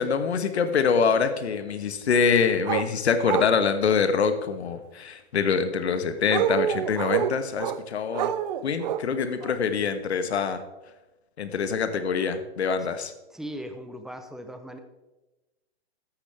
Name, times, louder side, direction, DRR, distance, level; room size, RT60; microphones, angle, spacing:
voice 1, 0.0-8.3 8.6-10.6 11.4-13.1, left 6 dB, 80° left, 10 dB, 1.4 m, -25 dB
sound 1, 2.6-2.9 3.2-3.6 6.3-7.8 8.1-9.0 9.4-9.5, right 10 dB, 40° right, 0.7 m, -27 dB
voice 2, 13.3-14.8, equal, ahead, 7 dB, 0.7 m, -38 dB
14.5 x 9.9 x 3.4 m, 1.1 s
hypercardioid pair, 135°, 33 cm